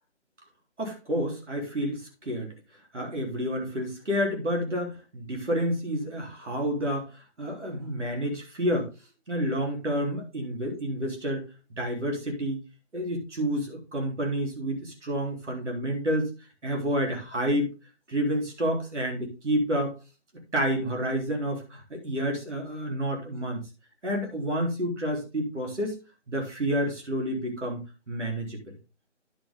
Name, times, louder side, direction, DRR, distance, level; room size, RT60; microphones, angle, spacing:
voice 1, 0.8-2.5 2.9-8.9 9.3-11.4 11.8-12.6 12.9-16.3 16.6-17.7 18.1-19.9 20.5-23.6 24.0-26.0 26.3-27.8 28.1-28.6, equal, 75° right, 1 dB, 3.7 m, -29 dB
10.5 x 6.2 x 3.7 m, 0.30 s
figure-of-eight pair, 165°, 36 cm